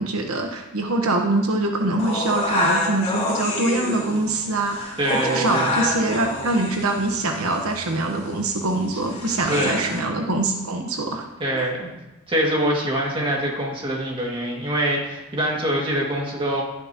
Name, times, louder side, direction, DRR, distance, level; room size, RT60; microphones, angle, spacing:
voice 1, 0.0-11.3 11.5-11.7, right 2 dB, 90° right, 3 dB, 1.2 m, -24 dB
sound 1, 2.0-10.0, left 1 dB, 30° left, 3.1 m, -28 dB
voice 2, 5.0-5.8 9.1-10.0 11.4-11.9 12.3-16.6, right 1 dB, 25° right, -2 dB, 2.2 m, -24 dB
11.5 x 10.5 x 3.0 m, 0.99 s
head